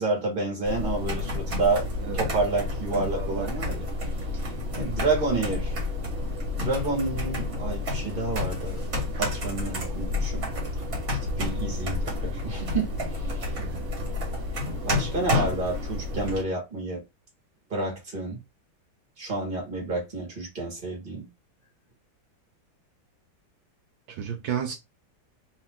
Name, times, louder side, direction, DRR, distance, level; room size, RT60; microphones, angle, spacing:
voice 1, 0.0-1.8 2.1-3.9 4.8-5.8 6.6-8.8 9.2-10.5 11.1-13.6 14.8-17.0 17.7-18.4 19.2-21.3, right 3 dB, 25° right, 1.9 m, -29 dB
sound 1, 0.6-16.4, left 2 dB, 45° right, 1.9 m, -30 dB
voice 2, 2.9-3.5 13.6-13.8 24.1-24.7, right 8 dB, 75° right, 1.4 m, -32 dB
3.6 x 3.1 x 3.6 m
omnidirectional pair, 2.2 m